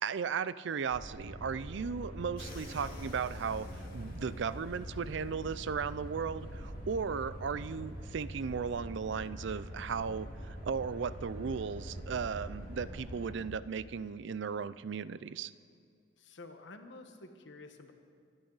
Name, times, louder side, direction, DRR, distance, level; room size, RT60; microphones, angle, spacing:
voice 1, 0.0-3.7 3.9-15.5, right 6 dB, 65° right, 16 dB, 0.4 m, -36 dB
sound 1, 0.9-13.3, equal, 85° right, 5.2 m, -44 dB
sound 2, 2.4-8.6, left 2 dB, 50° left, 2.3 m, -54 dB
voice 2, 16.2-17.9, left 2 dB, 70° left, 6 dB, 1.3 m, -50 dB
25.0 x 12.0 x 4.0 m, 2.3 s
head